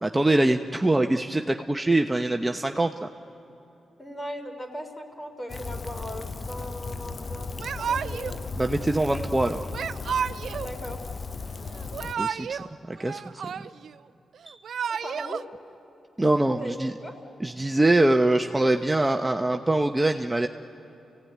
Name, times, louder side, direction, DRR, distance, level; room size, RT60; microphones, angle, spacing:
voice 1, 0.0-3.1 8.6-9.6 12.2-13.2 14.5-14.6 16.2-16.9 17.4-20.5, right 2 dB, 15° right, 5 dB, 1.0 m, -23 dB
voice 2, 4.0-8.4 10.6-11.0 14.9-15.4 16.5-17.2, equal, 25° left, 4 dB, 4.0 m, -38 dB
Rain, 5.5-12.1, left 4 dB, 45° left, 0.7 m, -36 dB
Yell / Crying sobbing, 7.6-8.4 9.7-10.7 11.8-12.7 13.0-13.9 14.5-15.4, right 7 dB, 70° right, 0.5 m, -31 dB
30.0 x 17.0 x 9.5 m, 2.9 s
cardioid pair, 60°, 0 cm